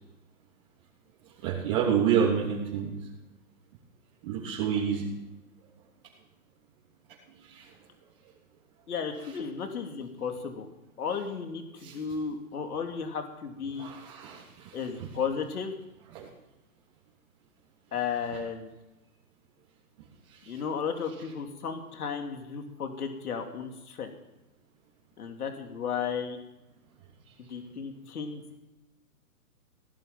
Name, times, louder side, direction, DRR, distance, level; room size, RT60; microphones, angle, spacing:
voice 1, 1.4-2.9 4.2-5.1 7.3-7.7 11.8-12.0 13.8-15.1 16.1-16.3 20.3-20.6, right 7 dB, 35° right, -5 dB, 3.2 m, -29 dB
voice 2, 8.9-10.7 11.0-13.9 14.7-15.7 17.9-18.7 20.5-24.1 25.2-26.4 27.4-28.6, left 6 dB, 70° left, 4 dB, 3.0 m, -34 dB
18.5 x 11.5 x 5.9 m, 1.0 s
hypercardioid pair, 145°, 46 cm